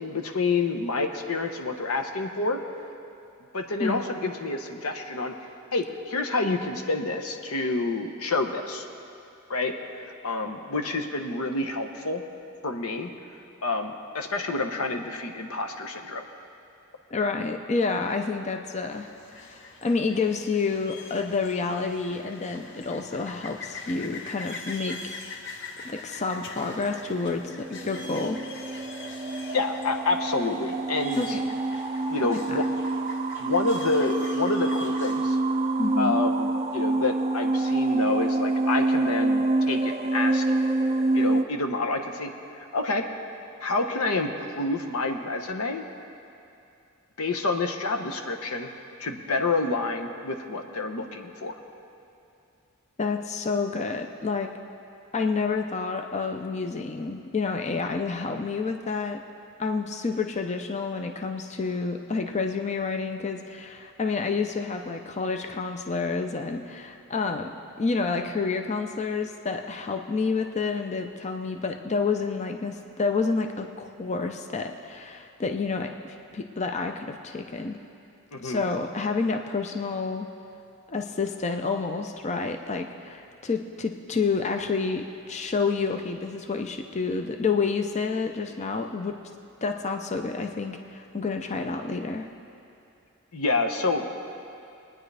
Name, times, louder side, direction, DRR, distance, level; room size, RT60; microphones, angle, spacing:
voice 1, 0.0-2.6 3.5-5.3 5.7-8.9 9.5-12.2 12.6-13.1 13.6-16.2 29.5-31.4 32.1-32.6 33.4-35.4 36.0-40.7 41.1-43.0 43.6-45.8 47.2-48.7 49.0-51.5 78.3-78.6 93.3-94.0, left 3 dB, 80° left, 4 dB, 0.9 m, -28 dB
voice 2, 17.1-25.2 25.8-28.4 31.1-31.5 32.2-32.6 35.8-36.2 53.0-54.5 55.1-59.2 59.6-67.5 67.8-77.8 78.4-80.3 80.9-89.2 89.6-92.3, left 4 dB, 30° left, 5 dB, 0.5 m, -29 dB
sound 1, 18.9-35.4, left 3 dB, 55° left, 1.0 m, -43 dB
sound 2, 26.8-41.4, right 2 dB, 30° right, 0.4 m, -27 dB
23.0 x 9.7 x 3.4 m, 2.6 s
head